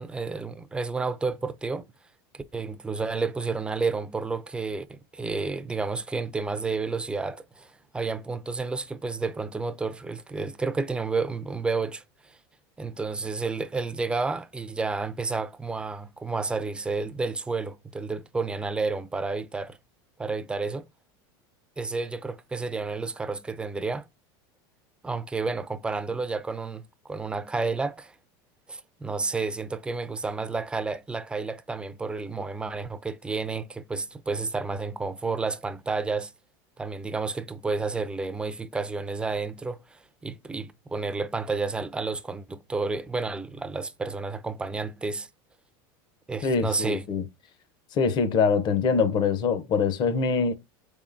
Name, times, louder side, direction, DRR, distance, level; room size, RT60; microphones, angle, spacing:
voice 1, 0.0-1.8 2.3-12.4 12.8-19.8 20.2-20.8 21.8-24.1 25.0-28.1 28.7-36.3 36.8-45.3 46.3-47.1, right 4 dB, 10° right, 0.4 m, -31 dB
voice 2, 46.4-47.2 47.9-50.5, left 5 dB, 40° left, 0.6 m, -24 dB
3.7 x 3.6 x 2.5 m
supercardioid pair, 130°, 12 cm